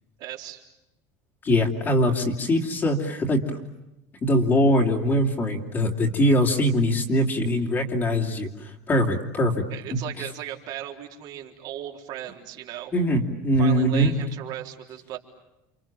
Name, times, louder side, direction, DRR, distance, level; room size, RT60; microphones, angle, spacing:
voice 1, 0.2-0.6 9.7-12.9 13.6-15.2, right 12 dB, 50° right, 2 dB, 3.9 m, -36 dB
voice 2, 1.4-3.4 4.2-9.5 9.9-10.2 12.9-14.1, equal, 25° left, 1 dB, 2.9 m, -22 dB
30.0 x 27.0 x 7.5 m, 0.93 s
cardioid pair, 150°, 9 cm